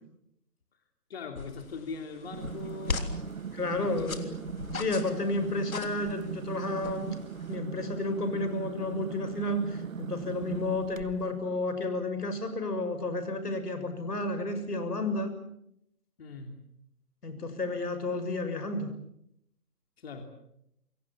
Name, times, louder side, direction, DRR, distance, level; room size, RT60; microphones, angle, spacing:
voice 1, 1.1-3.3 3.7-4.3 16.2-16.6 20.0-20.2, left 4 dB, 40° left, 5 dB, 3.1 m, -41 dB
sound 1, 1.3-7.5, left 4 dB, 65° left, 3.6 m, -40 dB
sound 2, 2.2-11.4, right 6 dB, 60° right, 1.5 m, -39 dB
voice 2, 3.5-4.4 4.7-7.2 7.5-15.4 17.2-18.9, left 2 dB, 85° left, 9 dB, 6.9 m, -31 dB
29.0 x 23.5 x 7.3 m, 0.76 s
hypercardioid pair, 170°, 46 cm